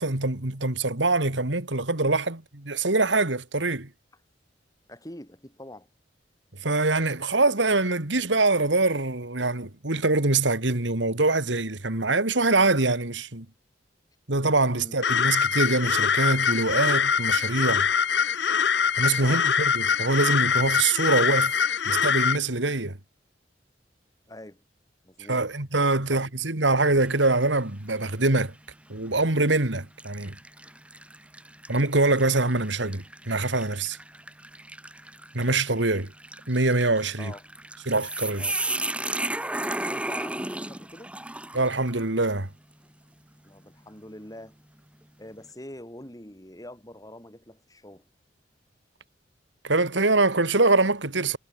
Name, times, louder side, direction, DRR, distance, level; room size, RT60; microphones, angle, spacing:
voice 1, 0.0-3.9 6.6-13.5 14.3-17.9 19.0-21.5 21.9-23.0 25.3-28.5 28.9-30.4 31.7-34.0 35.3-36.1 36.5-37.3 37.9-38.5 41.5-42.5 49.6-51.4, right 2 dB, 85° right, 2.8 m, -24 dB
voice 2, 4.9-5.9 14.7-15.0 19.2-19.5 24.3-24.6 25.0-25.4 26.1-26.2 37.2-37.4 38.4-38.6 39.9-41.2 43.4-44.6 45.2-48.0, left 1 dB, 20° left, 6.6 m, -44 dB
sound 1, 15.0-22.4, left 7 dB, 65° left, 0.9 m, -23 dB
sound 2, 27.1-27.5 28.0-28.2 29.1-29.4 30.0-42.0, right 1 dB, 5° right, 6.0 m, -35 dB
head